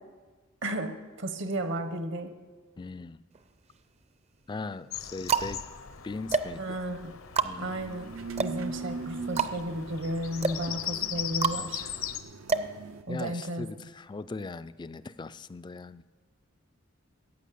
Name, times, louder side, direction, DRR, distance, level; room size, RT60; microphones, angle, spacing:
voice 1, 0.6-2.3 6.6-7.1 7.6-8.1 8.4-11.9 13.1-13.7, right 1 dB, 60° right, 9 dB, 1.2 m, -33 dB
voice 2, 2.8-3.2 4.5-5.6 6.0-6.8 7.4-7.8 13.1-16.0, left 3 dB, 20° left, 15 dB, 0.3 m, -39 dB
sound 1, 3.3-4.0 4.7-13.5, right 5 dB, 30° right, 0.6 m, -32 dB
Bird vocalization bird call bird song, 4.9-12.2, left 10 dB, 80° left, 0.9 m, -39 dB
sound 2, 7.6-13.0, right 4 dB, 75° right, 0.7 m, -41 dB
14.5 x 8.6 x 8.5 m, 1.4 s
head